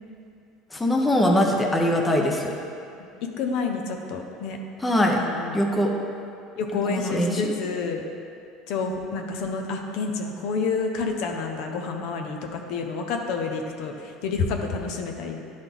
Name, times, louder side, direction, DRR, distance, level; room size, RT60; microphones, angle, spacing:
voice 1, 0.7-2.5 4.8-5.2 5.5-5.9 6.9-7.5, left 1 dB, 10° left, 0 dB, 0.6 m, -22 dB
voice 2, 3.4-4.6 5.2-5.6 6.6-8.0 8.7-15.4, left 4 dB, 65° left, 3 dB, 0.7 m, -29 dB
11.0 x 4.0 x 3.5 m, 2.5 s
cardioid pair, 135°, 0 cm